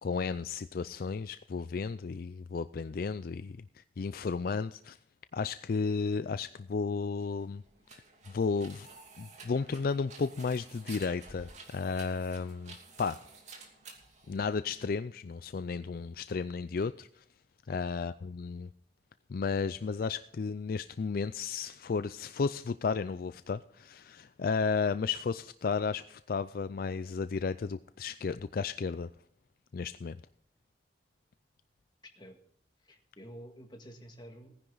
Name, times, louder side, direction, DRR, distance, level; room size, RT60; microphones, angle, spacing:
voice 1, 0.0-5.0 5.3-7.6 8.3-8.9 9.2-13.2 14.3-17.2 17.7-18.7 19.3-29.1 29.7-30.2, left 5 dB, 55° left, 13 dB, 0.4 m, -33 dB
sound 1, 7.1-15.0, right 4 dB, 40° right, 2.7 m, -52 dB
voice 2, 32.8-34.5, equal, 25° left, 4 dB, 1.9 m, -50 dB
18.0 x 10.0 x 3.9 m, 0.68 s
head